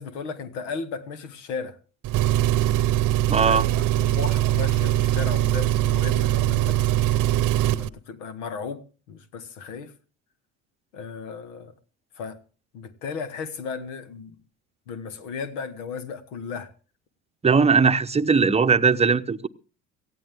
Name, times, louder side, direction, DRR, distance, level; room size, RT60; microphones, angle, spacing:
voice 1, 0.0-1.8 3.4-6.8 7.7-8.8 9.1-9.9 10.9-11.7 12.2-12.4 12.7-14.4 14.9-16.7, left 5 dB, 75° left, 1.8 m, -35 dB
Engine, 2.0-7.9, right 14 dB, 55° right, 0.9 m, -22 dB
voice 2, 3.3-3.6 17.4-19.5, right 5 dB, 15° right, 0.9 m, -19 dB
18.0 x 15.0 x 3.6 m
hypercardioid pair, 75°, 37 cm